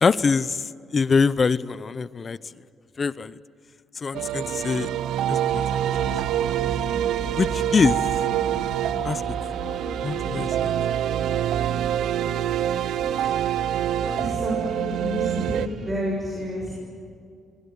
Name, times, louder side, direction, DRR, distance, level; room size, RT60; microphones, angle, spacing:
voice 1, 0.0-2.4 3.0-3.4 3.9-4.9 5.3-5.6 7.4-8.0 9.0-9.2 10.0-10.7, left 5 dB, 40° left, 17 dB, 0.7 m, -23 dB
sound 1, 4.1-15.7, right 11 dB, 80° right, 0.6 m, -26 dB
sound 2, 5.5-15.9, right 2 dB, 60° right, 4.3 m, -36 dB
voice 2, 14.0-16.7, equal, 20° right, -2 dB, 7.5 m, -29 dB
24.5 x 23.5 x 9.5 m, 2.3 s
cardioid pair, 90°, 0 cm